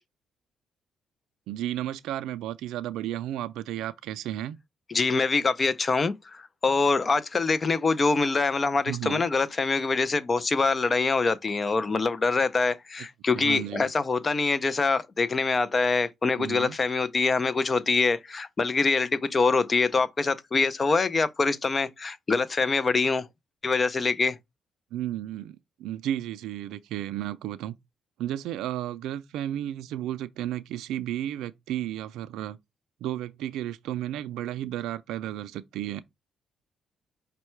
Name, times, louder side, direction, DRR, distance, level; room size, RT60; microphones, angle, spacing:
voice 1, 1.5-4.6 8.9-9.3 13.3-13.9 16.4-16.8 24.9-27.7 28.2-32.6 33.0-36.0, right 12 dB, 90° right, 0.3 m, -33 dB
voice 2, 4.9-23.3 23.6-24.4, left 4 dB, 35° left, 0.5 m, -24 dB
5.3 x 2.2 x 4.4 m
cardioid pair, 90°, 0 cm